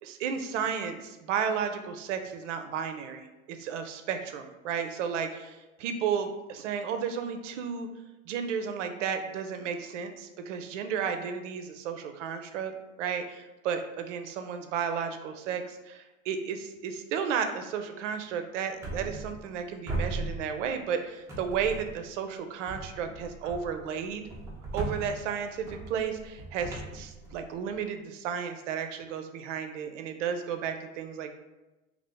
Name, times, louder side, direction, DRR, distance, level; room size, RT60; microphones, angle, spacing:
voice 1, 0.0-7.9 8.3-12.7 13.0-24.2 24.7-31.3, right 7 dB, 60° right, 7 dB, 0.5 m, -33 dB
sound 1, 18.8-19.6 19.9-20.9 21.3-22.1 22.7-27.8, right 2 dB, 10° right, 0.4 m, -38 dB
2.7 x 2.5 x 3.4 m, 1.1 s
hypercardioid pair, 100°, 42 cm